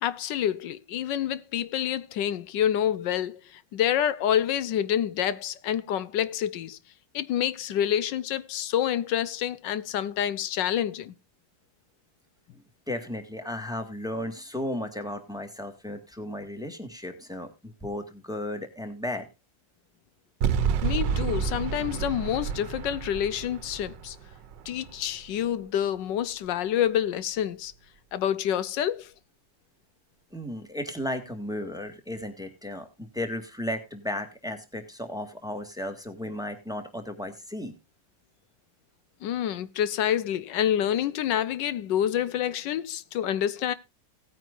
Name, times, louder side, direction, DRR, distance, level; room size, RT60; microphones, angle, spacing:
voice 1, 0.0-6.8 7.1-11.1 20.8-24.2 24.7-27.7 28.1-29.1 39.2-43.7, left 10 dB, 85° left, 1.4 m, -27 dB
voice 2, 12.9-19.3 30.3-37.7, left 1 dB, ahead, 1.7 m, -34 dB
sound 1, 20.4-25.6, right 7 dB, 85° right, 1.4 m, -30 dB
17.5 x 9.1 x 2.5 m
omnidirectional pair, 1.9 m